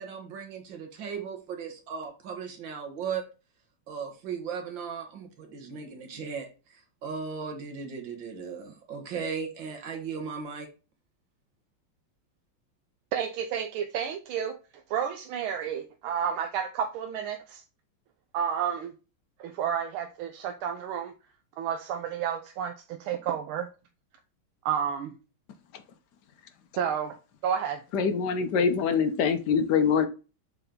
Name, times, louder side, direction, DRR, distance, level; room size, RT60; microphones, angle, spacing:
voice 1, 0.0-3.3 3.9-10.7, right 6 dB, 65° right, 4 dB, 2.0 m, -37 dB
voice 2, 13.1-14.6 14.9-17.6 18.3-18.9 19.4-21.1 21.6-23.7 24.6-25.1 26.8-27.1 27.4-27.8, right 8 dB, 80° right, 5 dB, 1.5 m, -31 dB
voice 3, 27.9-30.1, left 6 dB, 65° left, 8 dB, 1.2 m, -24 dB
6.8 x 4.1 x 3.7 m, 0.32 s
omnidirectional pair, 2.3 m